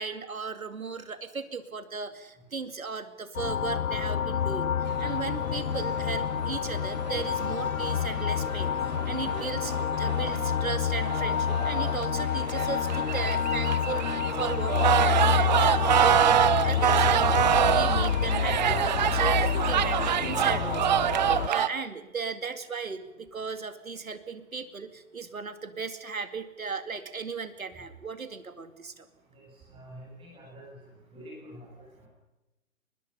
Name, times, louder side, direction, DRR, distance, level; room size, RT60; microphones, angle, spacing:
voice 1, 0.0-4.7 5.0-29.1, right 5 dB, 75° right, 11 dB, 2.4 m, -36 dB
sound 1, 3.3-21.5, left 8 dB, 80° left, 0.6 m, -28 dB
sound 2, 4.9-21.7, right 10 dB, 35° right, 0.8 m, -27 dB
voice 2, 29.3-30.6 31.1-32.1, equal, 15° right, -2 dB, 7.1 m, -47 dB
23.5 x 21.0 x 5.6 m, 1.0 s
figure-of-eight pair, 135°, 41 cm